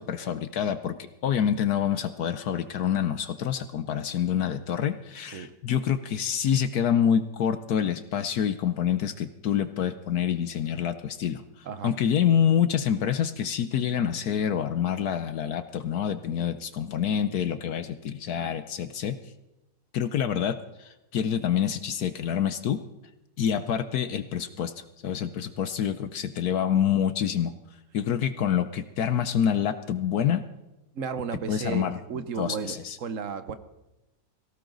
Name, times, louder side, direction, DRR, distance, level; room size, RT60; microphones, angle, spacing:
voice 1, 0.0-19.2 19.9-22.8 23.4-27.5 27.9-30.4 31.5-32.0 32.4-33.0, left 9 dB, 65° left, 12 dB, 1.1 m, -27 dB
voice 2, 11.6-12.0 30.9-33.6, right 6 dB, 50° right, 12 dB, 1.1 m, -34 dB
18.5 x 16.5 x 3.9 m, 0.99 s
omnidirectional pair, 2.0 m